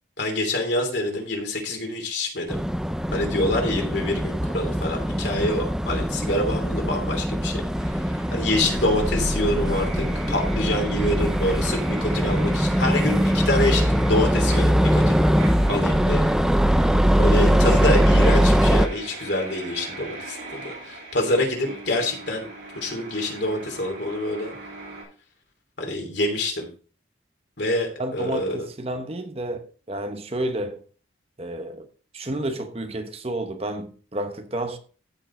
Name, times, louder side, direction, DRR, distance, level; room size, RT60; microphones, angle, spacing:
voice 1, 0.2-2.6 3.1-15.2 15.7-16.3 17.2-22.5 22.7-24.5 25.8-26.7 27.6-28.7, left 1 dB, 70° left, 3.0 m, -26 dB
sound 1, 2.5-18.9, equal, 5° right, 0.6 m, -21 dB
sound 2, 7.7-25.0, right 2 dB, 80° right, 5.5 m, -41 dB
voice 2, 28.0-30.8 31.4-31.9 32.1-34.8, right 1 dB, 30° right, 0.9 m, -31 dB
14.5 x 5.3 x 3.8 m
head